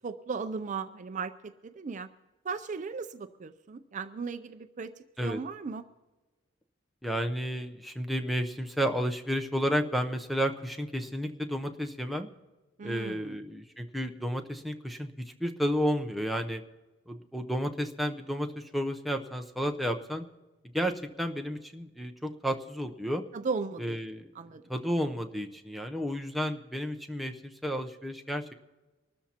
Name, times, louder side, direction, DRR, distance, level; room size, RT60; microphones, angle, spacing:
voice 1, 0.0-2.1 2.4-4.9 5.2-5.8 12.8-13.4 23.3-24.0 24.3-24.6, right 5 dB, 35° right, 10 dB, 0.4 m, -36 dB
voice 2, 7.0-12.3 12.8-15.1 15.4-16.6 17.1-20.2 20.7-23.2 23.8-24.3 24.7-28.4, equal, ahead, 3 dB, 0.6 m, -32 dB
24.5 x 13.0 x 2.9 m, 1.2 s
head